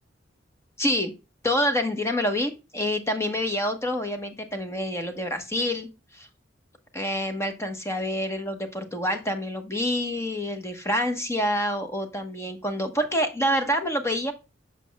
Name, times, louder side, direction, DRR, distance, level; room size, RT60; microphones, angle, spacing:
voice 1, 0.8-1.1 1.4-5.9 6.1-6.3 6.9-14.3, equal, 15° left, 7 dB, 1.0 m, -27 dB
7.6 x 6.3 x 2.3 m, 0.27 s
head